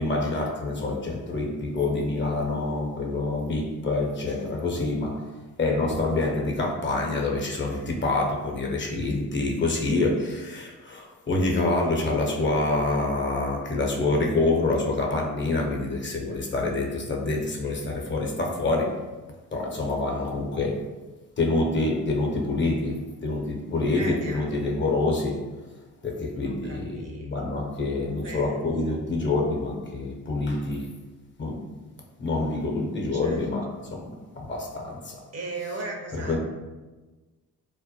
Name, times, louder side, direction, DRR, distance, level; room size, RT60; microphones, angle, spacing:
voice 1, 0.0-5.3 5.6-19.0 19.5-20.8 21.4-25.4 26.0-30.9 31.4-31.6 32.2-34.1 34.4-35.2 36.2-36.4, left 2 dB, 35° left, 0 dB, 0.5 m, -26 dB
voice 2, 23.9-24.6 26.3-27.3 28.2-28.9 33.1-33.4 35.3-36.4, right 3 dB, 45° right, 1 dB, 0.5 m, -37 dB
2.2 x 2.0 x 2.7 m, 1.2 s
supercardioid pair, 55°, 35 cm